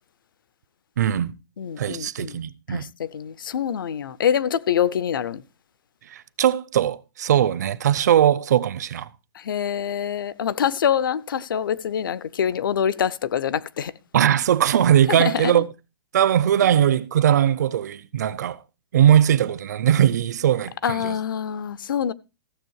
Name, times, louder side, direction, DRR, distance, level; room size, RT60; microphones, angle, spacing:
voice 1, 1.0-1.4 1.8-2.9 6.1-9.1 14.1-15.7 16.1-18.6 18.9-21.2, right 10 dB, 50° right, 0.6 m, -20 dB
voice 2, 1.6-2.4 2.7-5.4 9.4-13.9 15.1-15.6 20.8-22.1, left 8 dB, 65° left, 0.7 m, -25 dB
15.0 x 7.0 x 4.7 m
hypercardioid pair, 175°, 12 cm